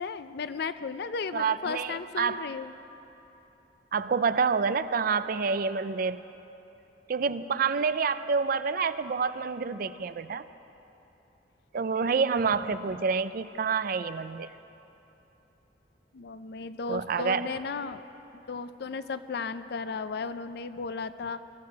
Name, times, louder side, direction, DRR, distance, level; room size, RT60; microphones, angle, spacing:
voice 1, 0.0-2.7 16.1-18.0 18.5-21.4, left 5 dB, 60° left, 12 dB, 0.5 m, -35 dB
voice 2, 1.3-2.5 3.9-6.2 7.1-10.5 11.7-14.5 16.9-17.5, right 5 dB, 50° right, 13 dB, 0.4 m, -28 dB
21.5 x 12.5 x 4.7 m, 3.0 s
head